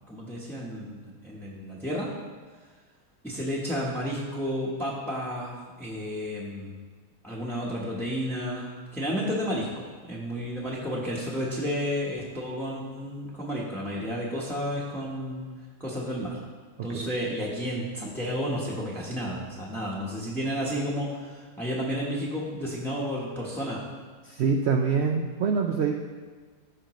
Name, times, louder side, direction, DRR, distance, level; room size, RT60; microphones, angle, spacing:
voice 1, 0.1-1.0 1.2-2.1 3.2-6.8 7.2-15.5 15.8-16.4 16.8-23.8, equal, ahead, -7 dB, 0.8 m, -32 dB
voice 2, 24.2-26.0, right 5 dB, 80° right, 4 dB, 0.6 m, -25 dB
14.5 x 5.1 x 3.1 m, 1.5 s
omnidirectional pair, 1.8 m